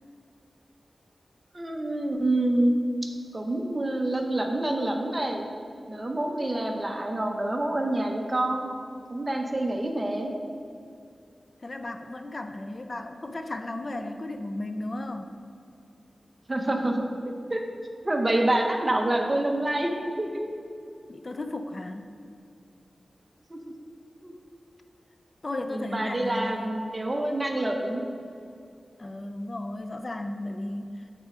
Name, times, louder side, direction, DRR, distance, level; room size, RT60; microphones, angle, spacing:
voice 1, 1.5-2.7 3.3-5.5 5.9-8.7 9.1-10.3 16.5-17.0 17.5-17.6 18.0-20.4 23.5-23.6 24.2-24.3 25.7-28.0, right 1 dB, 25° right, 2 dB, 0.8 m, -27 dB
voice 2, 11.6-15.4 21.1-22.2 25.4-26.7 29.0-31.1, left 2 dB, 40° left, 6 dB, 0.4 m, -35 dB
7.9 x 4.3 x 4.9 m, 2.5 s
wide cardioid pair, 90°, 0 cm